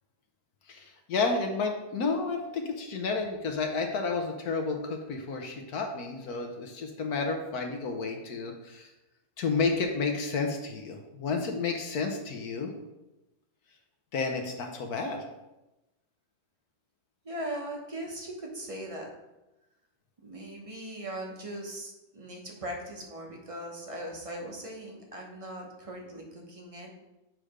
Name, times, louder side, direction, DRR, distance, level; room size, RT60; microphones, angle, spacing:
voice 1, 0.7-8.9 9.4-12.7 14.1-15.2, left 4 dB, 70° left, 3 dB, 1.2 m, -31 dB
voice 2, 17.2-19.1 20.2-26.9, right 1 dB, 25° right, 0 dB, 0.9 m, -39 dB
7.6 x 3.3 x 5.0 m, 0.98 s
omnidirectional pair, 1.7 m